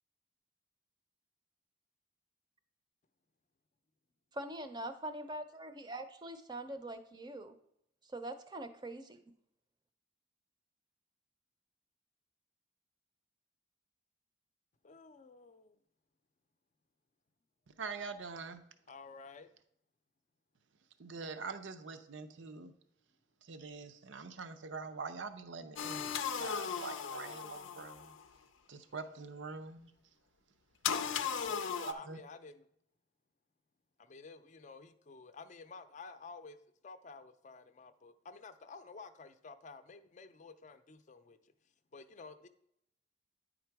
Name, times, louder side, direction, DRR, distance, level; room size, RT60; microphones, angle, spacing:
voice 1, 4.4-7.6 8.0-9.2, right 1 dB, 25° right, 9 dB, 0.6 m, -43 dB
voice 2, 14.8-15.8 18.9-19.5 31.4-32.7 34.0-36.6 36.8-41.5 41.9-42.5, left 4 dB, 40° left, 10 dB, 0.5 m, -52 dB
voice 3, 17.8-18.6 21.0-22.7 23.4-28.2 28.7-29.9 31.2-31.4 31.9-32.2, right 4 dB, 75° right, 8 dB, 0.6 m, -44 dB
sound 1, 25.8-28.2 30.8-31.9, left 7 dB, 90° left, 0.5 m, -37 dB
9.6 x 3.8 x 4.6 m, 0.74 s
head